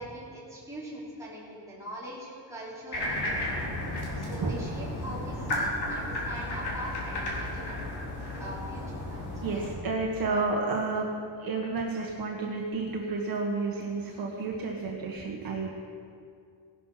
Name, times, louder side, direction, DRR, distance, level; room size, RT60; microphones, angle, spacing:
voice 1, 0.0-3.6 4.2-7.8 8.4-9.2 9.5-9.7, equal, 5° right, -8 dB, 4.4 m, -42 dB
sound 1, 2.9-9.8, left 1 dB, 60° left, 4.0 m, -33 dB
voice 2, 9.4-11.0 11.4-15.7, right 3 dB, 50° right, -1 dB, 1.6 m, -31 dB
17.5 x 12.0 x 5.9 m, 2.3 s
wide cardioid pair, 175°, 45 cm